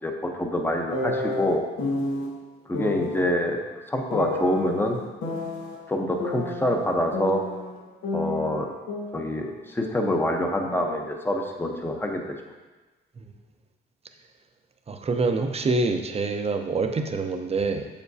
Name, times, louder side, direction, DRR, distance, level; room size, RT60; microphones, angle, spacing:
voice 1, 0.0-1.6 2.7-3.6 3.9-5.0 5.9-7.4 8.1-8.7 9.1-12.4, left 1 dB, 10° left, 2 dB, 0.9 m, -26 dB
sound 1, 0.9-2.3 2.7-3.3 4.1-5.8 6.2-7.8 8.0-10.2 10.4-12.0, left 2 dB, 80° left, 1.5 m, -31 dB
voice 2, 14.9-17.9, right 3 dB, 30° right, 5 dB, 0.7 m, -26 dB
7.2 x 7.0 x 2.8 m, 1.2 s
cardioid pair, 90°, 20 cm